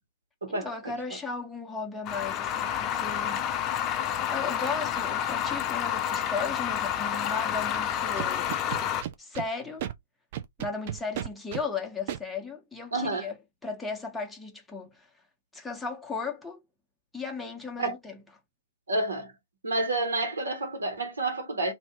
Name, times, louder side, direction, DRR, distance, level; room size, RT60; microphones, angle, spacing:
voice 1, 0.5-3.5 4.3-8.5 9.2-9.9 10.6-13.4 13.6-15.1 15.5-16.6 17.1-18.2, left 4 dB, 5° left, 0.9 m, -36 dB
sound 1, 2.1-9.0, left 9 dB, 30° left, 0.4 m, -29 dB
Scratching (performance technique), 8.2-9.5 9.8-9.9 10.3-11.6 12.1-12.2, right 11 dB, 45° right, 0.5 m, -33 dB
voice 2, 12.9-13.3 17.8-18.0 18.9-19.3 19.6-21.7, right 2 dB, 75° right, 1.5 m, -29 dB
2.7 x 2.6 x 3.3 m
figure-of-eight pair, 115°, 0 cm